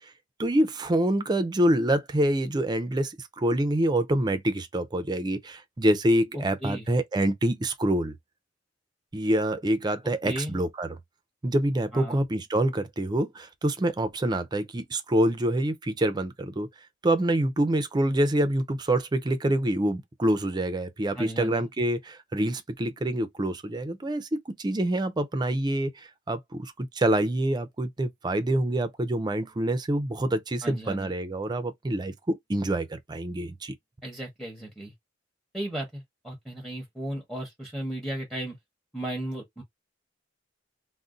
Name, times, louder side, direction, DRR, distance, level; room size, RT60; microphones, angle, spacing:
voice 1, 0.4-8.1 9.1-11.0 11.4-16.7 17.0-33.7, right 1 dB, 25° right, 0.5 m, -26 dB
voice 2, 6.3-6.9 10.2-10.6 11.9-12.2 21.1-21.7 30.6-31.1 34.0-34.9 35.5-38.6 38.9-39.6, right 1 dB, ahead, 0.9 m, -35 dB
2.6 x 2.1 x 3.6 m
head